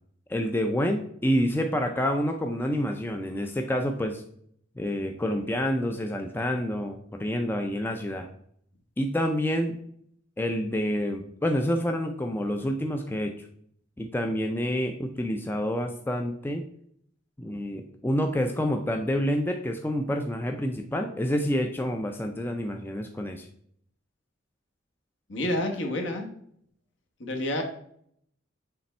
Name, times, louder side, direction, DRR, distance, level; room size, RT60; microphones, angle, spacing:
voice 1, 0.3-4.2 4.8-8.3 9.0-9.8 10.4-13.5 14.0-16.6 17.4-23.5, equal, 10° left, 4 dB, 0.4 m, -28 dB
voice 2, 25.3-26.3 27.2-27.6, left 1 dB, 65° left, 3 dB, 1.2 m, -29 dB
6.8 x 3.4 x 4.2 m, 0.66 s
head